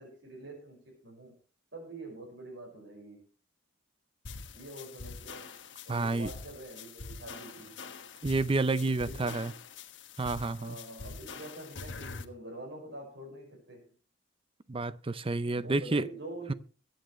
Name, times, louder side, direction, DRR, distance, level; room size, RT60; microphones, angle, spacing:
voice 1, 0.0-1.3 1.7-3.2 4.5-5.6 5.9-7.8 8.8-9.5 10.6-13.9 15.5-16.6, right 2 dB, 65° right, 5.5 m, -46 dB
sound 1, 4.2-12.2, left 4 dB, 65° left, 1.3 m, -45 dB
voice 2, 5.9-6.3 8.2-9.5 10.2-10.8 14.7-16.1, right 3 dB, 25° right, 0.5 m, -29 dB
22.5 x 9.2 x 3.2 m
head